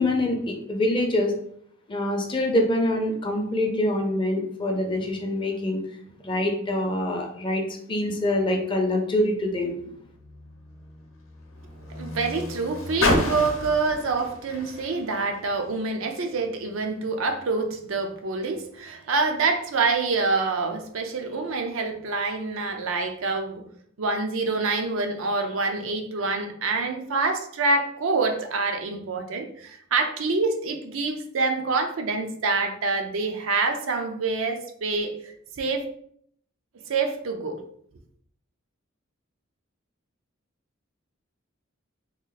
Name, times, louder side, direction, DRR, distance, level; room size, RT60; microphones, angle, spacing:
voice 1, 0.0-1.3 1.9-5.8 6.2-9.8, left 1 dB, 25° left, 2 dB, 0.6 m, -25 dB
Car, 9.4-16.0 16.8-16.9, left 2 dB, 70° left, 0.7 m, -31 dB
voice 2, 11.9-23.6 24.0-35.8 36.9-37.6, right 3 dB, 75° right, 5 dB, 0.5 m, -26 dB
3.0 x 2.3 x 3.9 m, 0.65 s
head